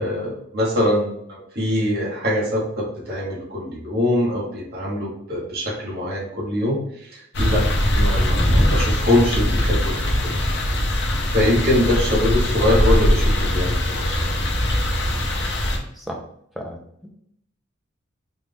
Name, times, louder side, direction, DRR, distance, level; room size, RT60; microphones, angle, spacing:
voice 1, 0.0-7.7 7.9-10.4 11.3-14.4, left 1 dB, 50° right, -4 dB, 1.3 m, -23 dB
sound 1, 7.3-15.8, equal, 60° left, 0.8 m, -21 dB
voice 2, 16.6-17.1, equal, ahead, 0 dB, 0.6 m, -34 dB
4.2 x 2.5 x 3.4 m, 0.70 s
head